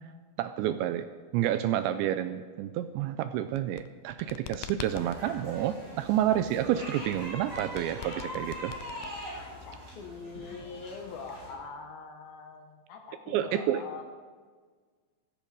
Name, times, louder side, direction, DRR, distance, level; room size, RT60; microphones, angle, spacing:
voice 1, 0.4-1.1 1.3-8.7 13.3-13.8, right 11 dB, 80° right, 10 dB, 2.7 m, -29 dB
sound 1, 3.4-5.2 7.0-9.6, left 13 dB, 85° left, 2.4 m, -43 dB
sound 2, 4.8-11.5, equal, 15° right, 6.6 m, -42 dB
voice 2, 9.4-14.0, left 5 dB, 70° left, 4 dB, 2.4 m, -43 dB
17.0 x 15.0 x 4.8 m, 1.5 s
omnidirectional pair, 5.4 m